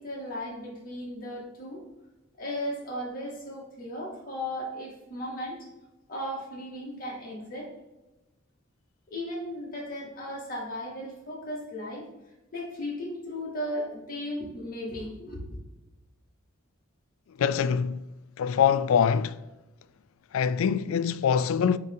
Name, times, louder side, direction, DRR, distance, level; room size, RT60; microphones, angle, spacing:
voice 1, 0.0-1.8 2.4-5.7 6.1-7.7 9.1-12.0 12.5-15.6, left 1 dB, 45° left, 2.3 m, -36 dB
voice 2, 17.4-18.0 18.4-19.3 20.3-21.8, left 7 dB, 70° left, 0.3 m, -24 dB
9.4 x 3.7 x 3.8 m
head